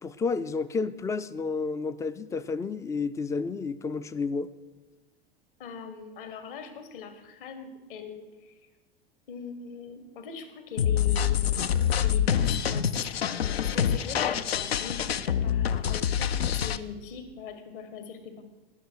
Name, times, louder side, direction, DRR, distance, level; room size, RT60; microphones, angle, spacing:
voice 1, 0.0-4.5, left 4 dB, 10° left, 14 dB, 0.3 m, -31 dB
voice 2, 5.6-8.5 9.3-11.6 12.0-13.0 13.3-18.4, left 6 dB, 60° left, 9 dB, 1.6 m, -41 dB
sound 1, 10.8-16.8, left 9 dB, 75° left, 0.5 m, -26 dB
19.0 x 6.6 x 4.6 m, 1.1 s
figure-of-eight pair, 85°, 30 cm